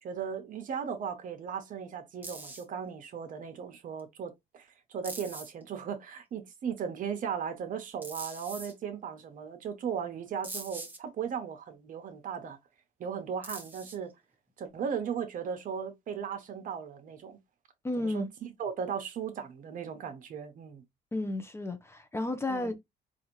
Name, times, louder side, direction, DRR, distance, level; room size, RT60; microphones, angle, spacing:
voice 1, 0.0-12.6 13.0-14.1 14.6-17.4 18.0-20.8 22.5-22.7, right 7 dB, 50° right, 0.9 m, -37 dB
sound 1, 2.2-2.6 4.0-4.1 5.0-5.6 8.0-8.7 10.4-11.0 13.4-14.1, right 2 dB, 10° right, 1.0 m, -42 dB
voice 2, 17.8-18.3 21.1-22.7, left 2 dB, 15° left, 0.6 m, -32 dB
4.1 x 2.5 x 3.0 m
cardioid pair, 110°, 17 cm